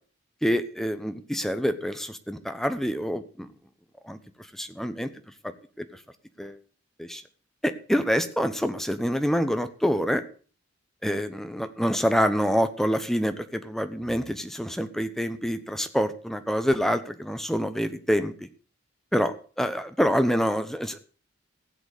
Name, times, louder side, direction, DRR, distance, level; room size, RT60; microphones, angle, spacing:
voice 1, 0.4-3.5 4.0-4.2 4.5-5.1 5.4-5.8 6.4-6.6 7.0-7.2 7.6-10.2 11.0-18.3 19.1-21.0, equal, ahead, 9 dB, 0.9 m, -26 dB
15.5 x 8.1 x 6.6 m, 0.41 s
head